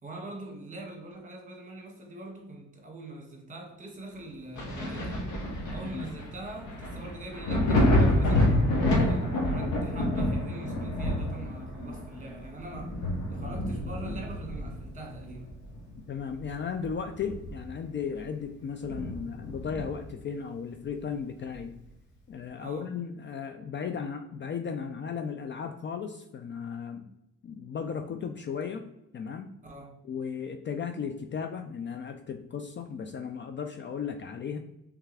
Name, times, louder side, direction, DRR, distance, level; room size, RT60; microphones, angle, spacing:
voice 1, 0.0-5.4 5.7-13.0 13.3-15.5 22.6-22.9 29.6-30.0, right 2 dB, 25° right, 1 dB, 1.4 m, -43 dB
Thunder, 4.5-15.9 16.3-17.8 18.2-18.3 18.8-20.1 21.5-21.6, left 1 dB, 70° left, 1.3 m, -28 dB
voice 2, 16.1-21.8 22.3-27.1 27.4-28.9 29.1-29.5 30.0-34.6, left 6 dB, 40° left, 6 dB, 0.4 m, -35 dB
3.4 x 3.4 x 3.2 m, 0.87 s
cardioid pair, 90°, 30 cm